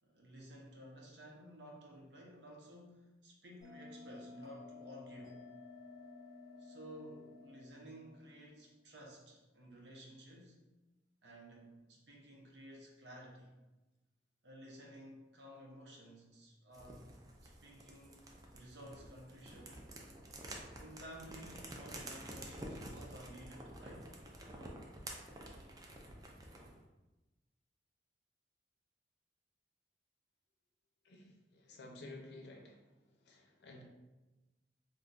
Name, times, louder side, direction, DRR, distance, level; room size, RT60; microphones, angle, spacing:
voice 1, 0.0-5.4 6.6-10.6 11.2-13.5 14.4-17.1 17.4-18.2 18.5-19.7 20.8-24.1, equal, 70° right, -1 dB, 0.7 m, -54 dB
Bell, 3.6-8.7, left 3 dB, 20° left, 0.7 m, -54 dB
sound 1, 16.7-26.8, right 1 dB, 20° right, 0.4 m, -50 dB
voice 2, 31.0-32.8 33.2-33.8, left 2 dB, 65° left, 1 dB, 0.6 m, -53 dB
2.5 x 2.3 x 3.9 m, 1.1 s
head